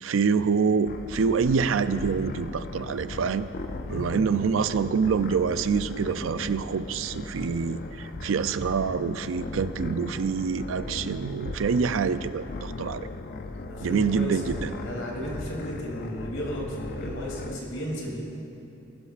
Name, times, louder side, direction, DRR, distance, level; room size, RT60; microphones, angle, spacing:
voice 1, 0.0-3.5 3.9-13.1 13.8-14.7, right 5 dB, 75° right, 13 dB, 0.4 m, -26 dB
sound 1, 0.9-17.6, left 3 dB, 50° left, 0.5 m, -38 dB
voice 2, 3.9-4.2 13.7-18.2, equal, 85° left, -2 dB, 2.8 m, -34 dB
20.0 x 12.5 x 2.5 m, 3.0 s
head